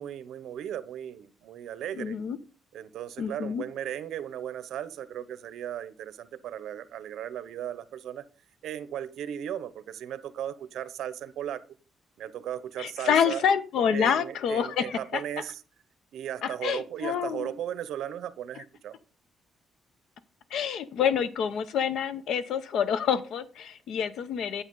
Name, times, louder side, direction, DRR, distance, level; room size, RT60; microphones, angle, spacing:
voice 1, 0.0-2.2 2.7-8.2 8.6-11.6 12.2-13.4 13.9-15.6 16.1-18.9, right 10 dB, 75° right, 14 dB, 0.8 m, -36 dB
voice 2, 2.0-2.4 3.2-3.6 12.8-15.2 16.4-17.5 20.5-24.6, left 7 dB, 70° left, 14 dB, 0.8 m, -27 dB
10.0 x 7.9 x 3.8 m, 0.37 s
cardioid pair, 160°, 0 cm